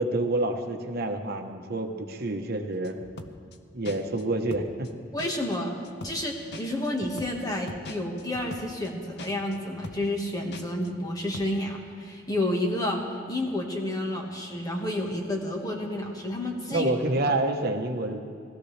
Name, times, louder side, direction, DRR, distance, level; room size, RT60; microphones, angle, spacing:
voice 1, 0.0-2.9 3.7-4.9 16.7-18.2, right 2 dB, 55° right, 4 dB, 1.1 m, -28 dB
sound 1, 2.8-3.6 3.8-4.2 4.5-4.9 5.2-5.6 5.8-6.2 6.5-8.9 9.2-9.6 9.8-10.2 10.5-10.9 11.2-11.4, left 2 dB, 60° left, 0.7 m, -42 dB
voice 2, 5.1-5.7 6.0-13.0 13.3-16.9, left 1 dB, 20° left, 0 dB, 1.6 m, -30 dB
20.0 x 14.0 x 3.3 m, 2.3 s
head